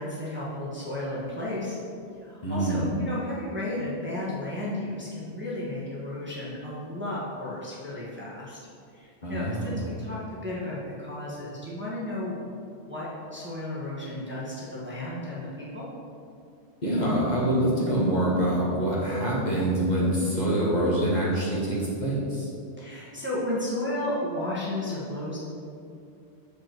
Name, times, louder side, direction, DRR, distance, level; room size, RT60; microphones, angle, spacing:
voice 1, 0.0-1.8 2.2-8.6 8.9-15.8 22.8-25.4, left 1 dB, 10° right, -8 dB, 1.4 m, -33 dB
voice 2, 2.4-2.9 9.2-9.8 16.8-22.5, right 1 dB, 40° left, -7 dB, 1.6 m, -25 dB
7.3 x 5.3 x 4.5 m, 2.5 s
omnidirectional pair, 1.2 m